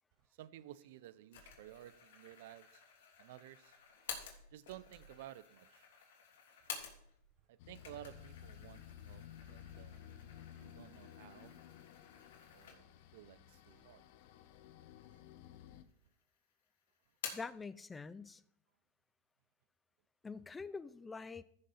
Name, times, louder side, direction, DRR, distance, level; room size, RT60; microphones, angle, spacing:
voice 1, 0.3-2.8 3.2-3.8 4.5-5.9 7.5-10.0 10.6-11.5 12.5-14.0 15.1-15.2, right 13 dB, 65° right, 0.5 m, -54 dB
sound 1, 1.3-7.3 7.6-13.1 13.5-13.6 14.5-15.1 15.4-16.2 16.5-17.6, left 7 dB, 75° left, 2.9 m, -51 dB
sound 2, 7.6-15.8, left 10 dB, 55° left, 0.8 m, -55 dB
voice 2, 17.3-18.4 20.2-21.4, left 4 dB, 10° left, 0.4 m, -45 dB
14.5 x 6.5 x 4.2 m
supercardioid pair, 150°, 0 cm